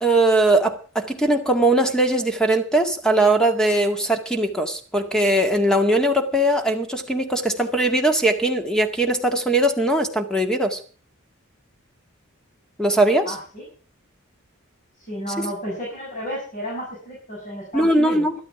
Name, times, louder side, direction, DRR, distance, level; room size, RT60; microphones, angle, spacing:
voice 1, 0.0-10.8 12.8-13.4 17.7-18.3, right 1 dB, 5° left, 6 dB, 1.9 m, -20 dB
voice 2, 13.2-13.6 15.0-18.3, equal, 35° left, -4 dB, 6.3 m, -32 dB
13.0 x 12.0 x 5.9 m, 0.40 s
head